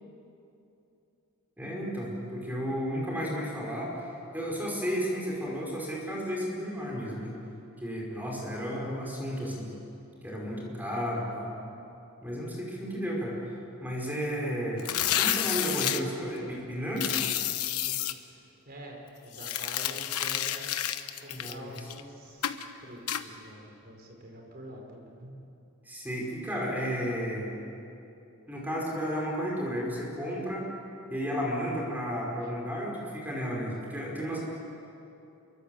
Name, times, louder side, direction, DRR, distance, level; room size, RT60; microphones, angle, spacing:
voice 1, 1.6-7.4 7.8-9.7 10.2-11.5 12.2-14.8 15.2-17.2 21.3-21.9 25.8-27.5 28.5-30.7 31.1-34.4, equal, 10° right, -3 dB, 5.1 m, -33 dB
sound 1, 14.8-16.0 17.0-18.1 19.3-22.0 22.4-22.6 23.1-23.2, left 11 dB, 85° left, 1.1 m, -30 dB
voice 2, 18.7-20.7 21.2-25.4, right 1 dB, 45° right, 1 dB, 5.0 m, -46 dB
28.0 x 24.0 x 7.8 m, 2.8 s
head